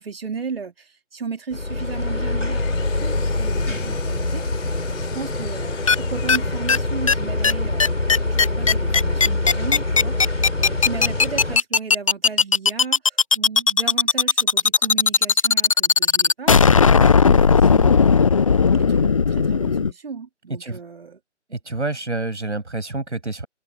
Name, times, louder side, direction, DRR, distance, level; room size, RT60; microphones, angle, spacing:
voice 1, 0.0-7.8 8.4-16.5 17.0-18.4 18.8-21.2, right 5 dB, 55° right, 3.3 m, -35 dB
sound 1, 1.5-11.6, left 2 dB, 80° left, 3.7 m, -25 dB
Engine, 2.0-7.7, left 21 dB, 15° left, 5.1 m, -44 dB
sound 2, 5.9-6.0 6.3-6.4 6.7-6.8 7.1-7.2 7.4-7.5 7.8-19.9, left 5 dB, 30° left, 0.8 m, -16 dB
voice 2, 21.5-23.5, right 2 dB, 70° right, 7.1 m, -28 dB
figure-of-eight pair, 150°, 36 cm